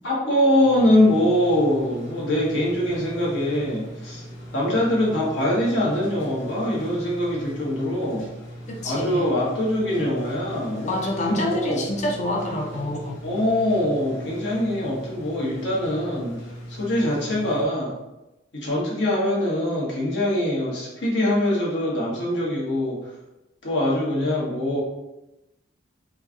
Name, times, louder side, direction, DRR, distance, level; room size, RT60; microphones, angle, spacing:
voice 1, 0.0-4.2 4.5-8.2 8.8-11.0 11.3-11.8 13.2-16.4 16.7-17.9 18.5-23.0 23.6-24.8, left 1 dB, 70° left, -4 dB, 1.0 m, -23 dB
sound 1, 0.6-17.6, equal, 90° left, 1.3 m, -40 dB
voice 2, 8.7-9.3 10.9-13.2, left 1 dB, 40° left, -1 dB, 0.5 m, -27 dB
3.1 x 2.4 x 3.4 m, 0.96 s
head